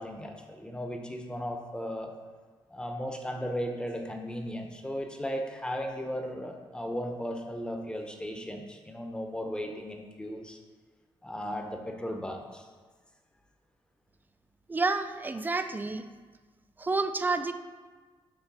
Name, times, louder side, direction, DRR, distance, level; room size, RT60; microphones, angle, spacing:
voice 1, 0.0-2.1 2.7-10.6 11.2-12.7 15.8-15.9, equal, 10° left, 3 dB, 0.7 m, -36 dB
voice 2, 14.7-16.0 16.8-17.5, right 3 dB, 20° right, 10 dB, 0.3 m, -29 dB
7.2 x 3.2 x 5.3 m, 1.4 s
cardioid pair, 115°, 10 cm